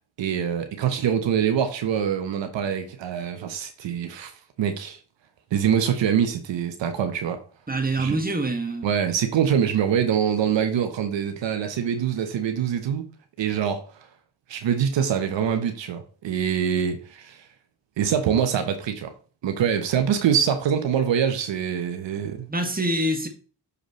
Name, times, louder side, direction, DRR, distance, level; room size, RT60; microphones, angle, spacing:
voice 1, 0.2-4.3 4.6-5.0 5.5-7.4 8.0-8.2 8.8-13.0 13.4-13.8 14.5-17.4 18.0-19.1 19.4-22.5, right 8 dB, 85° right, 1.0 m, -24 dB
voice 2, 7.7-8.9 22.5-23.3, right 1 dB, 20° right, 1.8 m, -25 dB
6.6 x 4.9 x 3.1 m
supercardioid pair, 45°, 43 cm